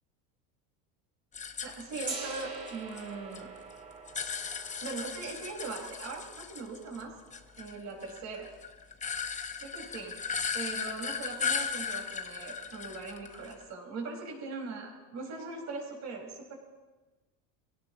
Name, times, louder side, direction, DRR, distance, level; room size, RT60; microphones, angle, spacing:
sound 1, 1.3-3.4 3.7-7.0 7.3-13.7, left 6 dB, 20° left, 0.9 m, -37 dB
voice 1, 1.6-3.5 4.8-7.1 7.6-8.5 9.6-10.2 10.5-16.5, right 4 dB, 50° right, -1 dB, 5.4 m, -40 dB
Gong, 2.0-8.0, right 3 dB, 25° right, 5.7 m, -45 dB
24.5 x 17.0 x 3.1 m, 1.2 s
cardioid pair, 130°, 36 cm